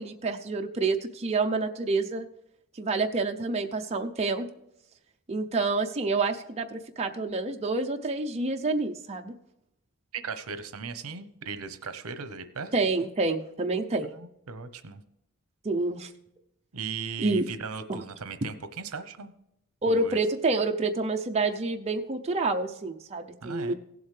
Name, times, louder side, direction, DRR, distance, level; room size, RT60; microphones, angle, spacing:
voice 1, 0.0-2.2 2.8-4.5 5.3-9.3 12.7-14.1 15.6-16.1 17.2-17.4 17.9-18.0 19.8-23.7, right 3 dB, 30° right, 3 dB, 0.6 m, -28 dB
voice 2, 10.1-12.7 14.1-15.0 16.7-19.3 19.9-20.2 23.4-23.7, right 5 dB, 75° right, 11 dB, 0.8 m, -37 dB
17.0 x 7.8 x 3.3 m, 0.80 s
head